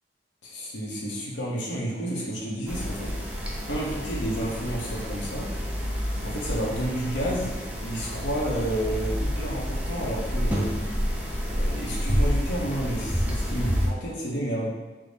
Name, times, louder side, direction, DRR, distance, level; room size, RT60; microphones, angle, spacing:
voice 1, 0.4-5.5 6.2-7.5 7.8-10.7 11.4-14.7, right 1 dB, 90° left, -4 dB, 0.8 m, -31 dB
sound 1, 2.7-13.9, equal, 10° right, 0.4 m, -29 dB
3.5 x 2.0 x 3.9 m, 1.2 s
head